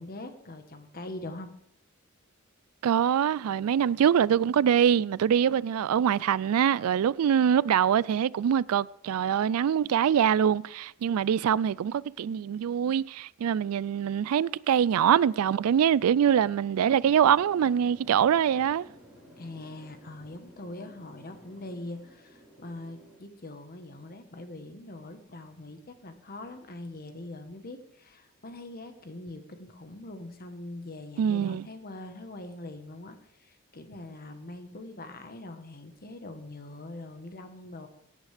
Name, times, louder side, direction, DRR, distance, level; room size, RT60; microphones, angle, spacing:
voice 1, 0.0-1.5 19.4-37.9, left 2 dB, 45° left, 1.3 m, -43 dB
voice 2, 2.8-18.8 31.2-31.6, right 8 dB, 80° right, 0.3 m, -24 dB
sound 1, 17.0-23.2, equal, ahead, 4.5 m, -53 dB
16.5 x 9.0 x 3.4 m
head